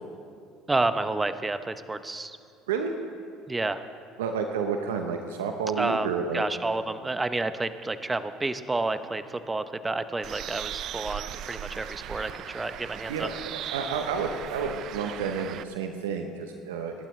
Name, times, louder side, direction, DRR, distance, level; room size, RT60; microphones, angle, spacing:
voice 1, 0.7-2.4 3.5-3.8 5.8-6.1 6.3-13.3, right 2 dB, 20° right, 11 dB, 0.8 m, -30 dB
voice 2, 4.2-6.4 13.1-17.1, right 5 dB, 85° right, 5 dB, 0.9 m, -30 dB
Bird, 10.2-15.6, right 11 dB, 60° right, 0.5 m, -38 dB
26.5 x 12.0 x 3.3 m, 2.3 s
hypercardioid pair, 70°, 0 cm